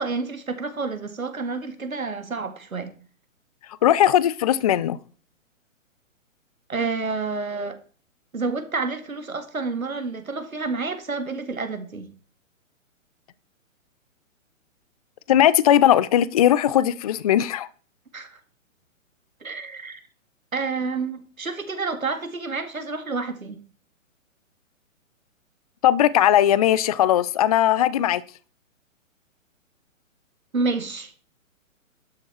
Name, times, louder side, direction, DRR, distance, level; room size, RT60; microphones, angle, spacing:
voice 1, 0.0-2.9 6.7-7.8 8.3-12.1 18.1-18.4 19.4-20.0 20.5-23.6 30.5-31.1, right 4 dB, 90° right, 1.9 m, -29 dB
voice 2, 3.8-5.0 15.3-17.7 25.8-28.2, left 11 dB, 30° left, 0.4 m, -18 dB
11.5 x 7.0 x 4.4 m
figure-of-eight pair, 125°, 41 cm